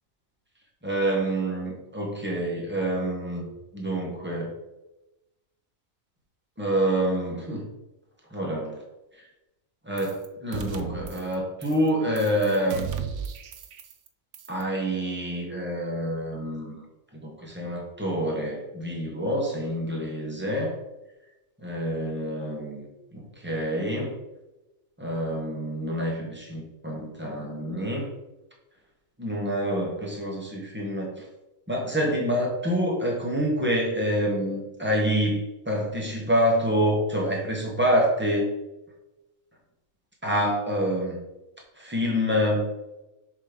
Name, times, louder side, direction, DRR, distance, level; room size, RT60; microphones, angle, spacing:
voice 1, 0.8-4.5 6.6-7.7 8.3-8.8 9.2-9.3 9.8-12.9 14.5-16.8 17.2-20.7 21.6-22.9 23.1-24.2 25.0-28.1 29.2-31.2 31.7-38.5 40.2-41.2 41.8-42.7, equal, 10° right, -2 dB, 1.4 m, -27 dB
sound 1, 10.0-10.3 10.5-11.3 11.6-11.9 12.2-14.1 14.3-14.6, right 7 dB, 65° right, 0.9 m, -36 dB
6.8 x 3.3 x 5.1 m, 0.99 s
omnidirectional pair, 1.5 m